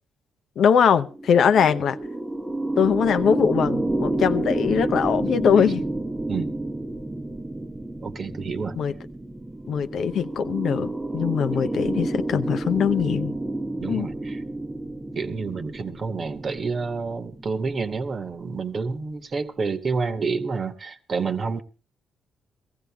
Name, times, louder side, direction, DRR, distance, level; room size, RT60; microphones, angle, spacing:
voice 1, 0.6-2.0 2.8-5.8 8.8-8.9 9.7-13.4 13.9-14.1, left 7 dB, 65° left, 0.7 m, -21 dB
sound 1, 1.0-18.5, right 2 dB, 15° right, 0.9 m, -30 dB
voice 2, 8.0-8.8 11.7-11.8 13.8-14.4 15.1-21.6, right 4 dB, 40° right, 1.2 m, -29 dB
17.5 x 15.0 x 3.4 m
cardioid pair, 90°, 0 cm